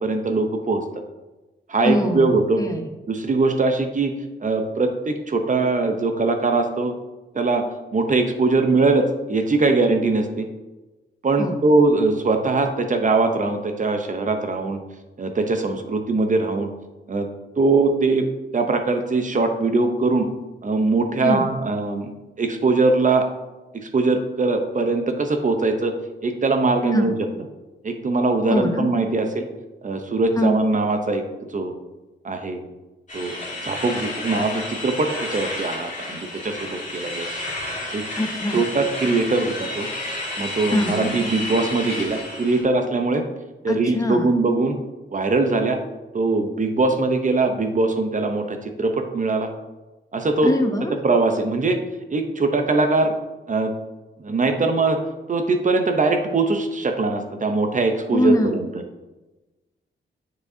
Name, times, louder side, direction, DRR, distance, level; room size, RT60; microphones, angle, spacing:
voice 1, 0.0-0.8 1.7-2.6 3.1-4.1 4.4-6.9 7.3-7.6 7.9-10.5 11.2-14.8 15.2-16.7 17.1-17.3 17.6-18.3 18.5-20.3 20.6-22.1 22.4-23.3 23.7-25.9 26.2-27.3 27.8-29.5 29.8-31.2 31.5-31.7 32.2-32.6 33.1-37.3 37.9-38.0 38.5-39.9 40.4-43.2 43.6-44.8 45.1-45.8 46.1-49.5 50.1-50.5 51.0-51.8 52.1-53.1 53.5-53.7 54.2-55.0 55.3-58.7, right 3 dB, 40° right, 6 dB, 0.7 m, -21 dB
voice 2, 1.8-2.9 11.4-11.6 21.2-21.4 26.9-27.1 28.5-28.9 30.4-30.6 38.2-38.6 40.7-41.1 43.7-44.3 50.4-50.9 58.1-58.6, left 1 dB, 15° left, 5 dB, 0.7 m, -22 dB
sound 1, 33.1-42.6, left 1 dB, 40° left, 2.3 m, -31 dB
9.2 x 4.9 x 2.7 m, 1.1 s
wide cardioid pair, 95°, 20 cm